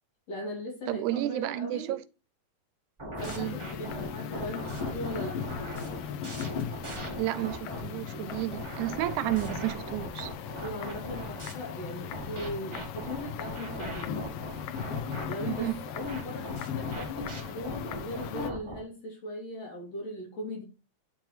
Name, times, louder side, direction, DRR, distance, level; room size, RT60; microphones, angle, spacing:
voice 1, 0.3-2.0 3.2-5.6 10.6-14.2 15.3-20.6, left 1 dB, 55° left, 4.1 m, -39 dB
voice 2, 0.9-2.0 3.2-3.6 7.2-10.3 15.5-15.8, right 15 dB, 85° right, 2.0 m, -31 dB
sound 1, 3.0-7.8 8.3-11.5 12.1-18.8, right 2 dB, 30° right, 0.5 m, -40 dB
sound 2, 3.2-18.5, left 8 dB, 90° left, 1.2 m, -38 dB
9.7 x 4.5 x 3.2 m
omnidirectional pair, 3.4 m